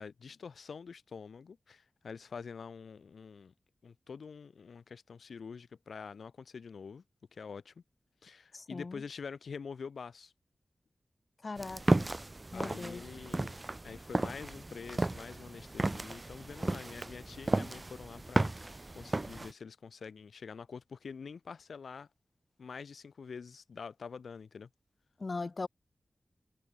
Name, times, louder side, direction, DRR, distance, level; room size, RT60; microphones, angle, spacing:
voice 1, 0.0-3.5 3.8-7.0 7.3-7.8 8.2-10.3 12.5-22.1 22.6-24.7, left 5 dB, 85° left, 7.5 m, -46 dB
voice 2, 8.5-8.9 11.4-12.1 12.5-13.0 25.2-25.7, left 3 dB, 45° left, 1.2 m, -39 dB
sound 1, 11.6-19.5, right 2 dB, 25° right, 2.4 m, -34 dB
wide cardioid pair, 105°, 0 cm